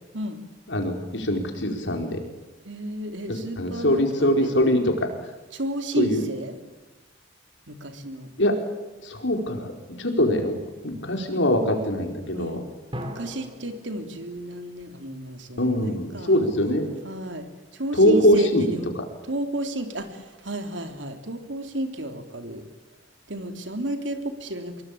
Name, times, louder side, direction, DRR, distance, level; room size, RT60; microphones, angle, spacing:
voice 1, 0.7-2.2 3.3-5.1 6.0-6.2 8.4-8.5 9.0-9.7 10.0-10.5 10.8-12.6 15.6-16.8 18.0-18.6, left 1 dB, 75° left, 4 dB, 4.8 m, -22 dB
voice 2, 2.6-4.5 5.5-6.6 7.7-8.3 12.3-12.6 13.1-16.5 17.0-17.5 17.7-18.9 19.2-22.6 23.3-24.8, right 1 dB, 75° right, 7 dB, 3.5 m, -32 dB
sound 1, 12.9-15.7, equal, 30° right, 3.7 m, -40 dB
25.0 x 22.5 x 8.8 m, 1.1 s
head